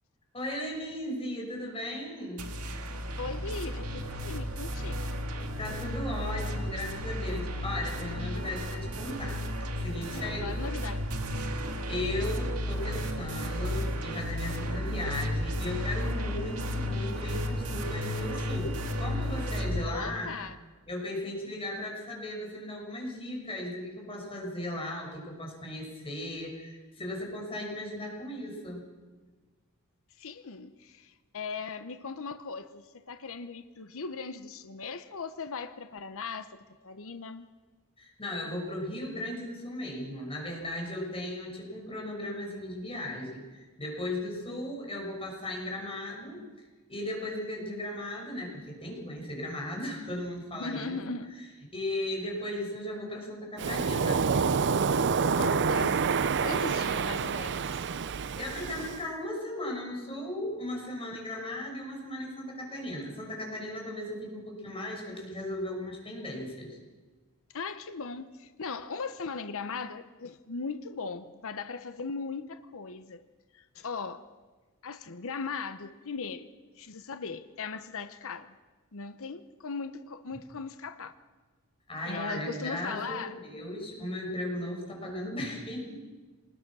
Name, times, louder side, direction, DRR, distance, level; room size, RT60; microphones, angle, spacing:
voice 1, 0.3-2.5 5.6-9.4 9.8-10.6 11.9-20.3 20.9-28.8 38.0-46.4 46.9-50.9 51.7-54.2 58.1-66.8 81.9-86.0, left 1 dB, 25° left, 6.3 m, -36 dB
sound 1, 2.4-19.8, left 1 dB, 75° right, 2.3 m, -33 dB
voice 2, 3.2-5.2 10.0-11.0 19.8-20.6 30.2-37.5 50.5-51.3 55.3-57.9 67.5-73.2 73.5-74.3 74.8-76.5 76.7-78.6 78.9-81.1 82.0-83.4, left 4 dB, 65° left, 0.9 m, -39 dB
Waves surf, 53.6-59.0, right 5 dB, 55° right, 0.6 m, -28 dB
26.5 x 20.5 x 6.2 m
head